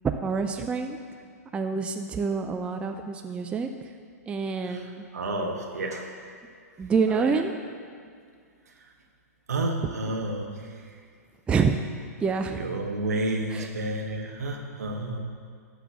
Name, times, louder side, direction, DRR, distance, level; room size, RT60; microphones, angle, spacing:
voice 1, 0.2-1.0 1.5-3.7 4.3-5.1 6.8-7.5 11.5-11.8 12.2-12.6 13.5-13.7, right 5 dB, 10° right, 5 dB, 0.4 m, -27 dB
voice 2, 4.6-6.1 7.1-7.4 8.7-8.9 9.5-11.0 12.5-15.2, right 2 dB, 70° right, 1 dB, 1.4 m, -31 dB
11.5 x 3.9 x 7.1 m, 2.2 s
figure-of-eight pair, 110°, 9 cm